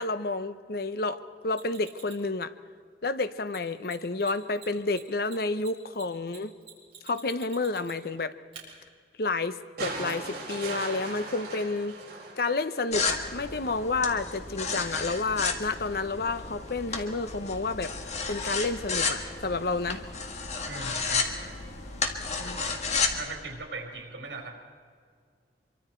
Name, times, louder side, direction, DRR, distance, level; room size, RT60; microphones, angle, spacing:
voice 1, 0.0-2.5 3.0-6.5 7.0-8.3 9.2-12.0 12.4-17.9 18.3-20.0 22.4-22.6, left 3 dB, 60° left, 12 dB, 0.8 m, -30 dB
Mechanisms, 1.5-2.3 3.5-3.6 3.8-4.3 4.5-8.1 8.5-8.6 10.1-10.2, right 8 dB, 35° right, 5.2 m, -48 dB
sound 1, 9.8-13.1 14.4-14.5, right 3 dB, 55° right, 6.7 m, -38 dB
sound 2, 12.9-23.3, left 4 dB, 40° left, 1.7 m, -32 dB
voice 2, 20.6-21.7 22.4-22.7 23.1-24.5, right 3 dB, 80° right, 2 dB, 4.2 m, -40 dB
25.0 x 24.0 x 4.5 m, 2.1 s
head